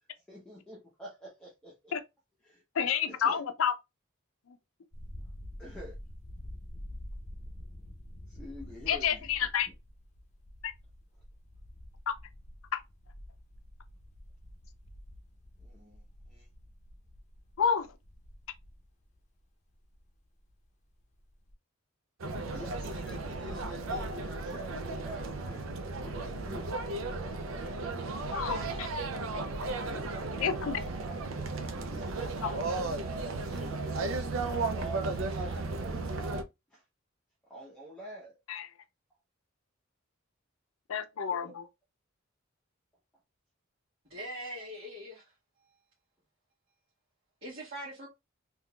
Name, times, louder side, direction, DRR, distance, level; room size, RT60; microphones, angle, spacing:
voice 1, 0.2-1.9 2.4-2.6 3.1-3.4 5.6-6.0 8.3-9.3 15.6-16.5 22.4-26.7 29.8-36.1 36.7-36.8 37.5-38.4 41.2-41.6, equal, 5° left, 0.8 m, -47 dB
voice 2, 2.8-3.7 8.9-9.7 10.6-10.7 12.1-12.2 12.7-12.8 17.6-17.9 28.3-28.9 30.4-30.8 38.5-38.7 40.9-41.6, left 7 dB, 90° left, 0.5 m, -29 dB
sound 1, 4.9-20.7 21.0-21.5, left 1 dB, 35° left, 0.7 m, -48 dB
sound 2, 22.2-36.4, right 3 dB, 75° right, 0.5 m, -35 dB
voice 3, 44.1-45.3 47.4-48.1, right 1 dB, 50° right, 1.6 m, -41 dB
3.6 x 2.8 x 2.2 m
head